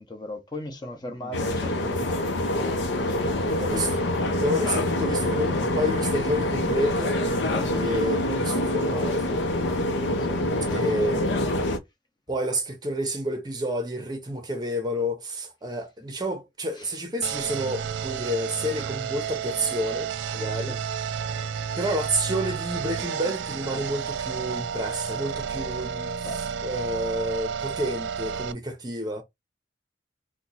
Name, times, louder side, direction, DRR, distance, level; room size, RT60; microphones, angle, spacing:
voice 1, 0.0-2.7 3.0-3.6 7.5-8.6 10.2-10.4 10.7-10.9 16.7-17.0 20.6-20.8 26.2-26.6, left 1 dB, 25° left, 0.7 m, -39 dB
voice 2, 1.1-1.5 3.6-3.9 4.3-7.2 7.7-9.4 10.7-11.4 12.3-20.7 21.7-26.3 26.6-29.2, equal, 20° right, 0.7 m, -29 dB
sound 1, 1.3-11.8, left 1 dB, 80° left, 0.7 m, -25 dB
sound 2, 17.2-28.5, right 7 dB, 75° right, 0.3 m, -31 dB
2.8 x 2.2 x 4.0 m
head